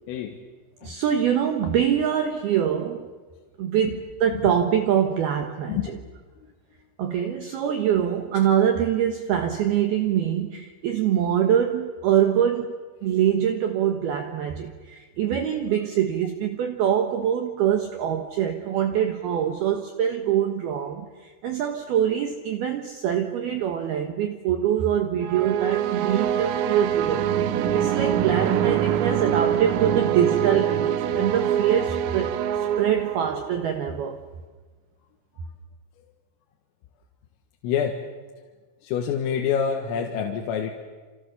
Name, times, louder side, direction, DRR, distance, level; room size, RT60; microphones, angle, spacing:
voice 1, 0.8-3.1 3.6-6.0 7.0-12.8 13.0-27.3 27.7-34.2, right 9 dB, 65° right, 5 dB, 2.6 m, -24 dB
sound 1, 25.2-33.6, right 10 dB, 90° right, 3.8 m, -24 dB
voice 2, 37.6-38.0 38.8-40.7, left 8 dB, 80° left, 2 dB, 4.2 m, -27 dB
29.5 x 28.0 x 7.1 m, 1.4 s
omnidirectional pair, 5.9 m